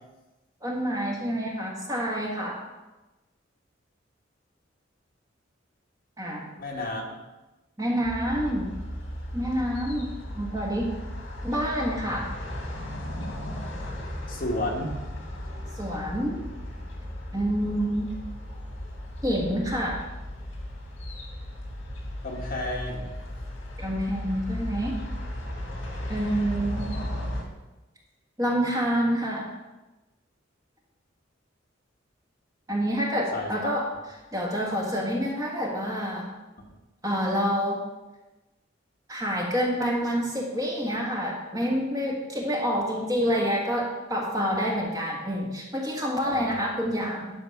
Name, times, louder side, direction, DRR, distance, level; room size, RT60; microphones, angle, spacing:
voice 1, 0.6-2.6 6.2-6.5 7.8-8.7 9.3-10.9 11.4-12.3 15.8-16.4 17.3-18.1 19.2-20.0 23.8-25.0 26.1-26.9 28.4-29.5 32.7-33.8 34.3-36.3 37.0-37.8 39.1-47.3, equal, 20° right, -2 dB, 1.5 m, -27 dB
voice 2, 6.6-7.2 14.3-15.0 22.2-23.1 33.3-33.8 46.2-46.6, left 1 dB, 45° left, -1 dB, 1.7 m, -32 dB
sound 1, 8.0-27.4, left 1 dB, 70° left, 2.3 m, -36 dB
11.0 x 4.4 x 5.8 m, 1.1 s
head